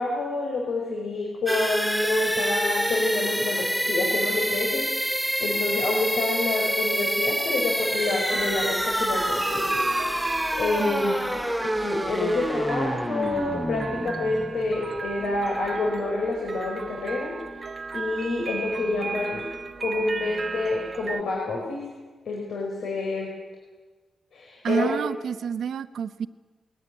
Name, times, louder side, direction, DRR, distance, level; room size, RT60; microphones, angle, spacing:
voice 1, 0.0-4.8 5.4-9.8 10.2-17.3 17.9-19.4 19.8-21.8 22.2-23.3 24.3-24.9, left 2 dB, 80° left, -1 dB, 4.9 m, -28 dB
sound 1, 1.5-15.2, equal, ahead, 0.7 m, -27 dB
sound 2, 8.3-21.2, right 4 dB, 30° right, 0.9 m, -36 dB
voice 2, 10.8-11.1 24.6-26.3, right 7 dB, 75° right, 13 dB, 0.8 m, -28 dB
21.0 x 18.0 x 9.9 m, 1.3 s
wide cardioid pair, 165°, 0 cm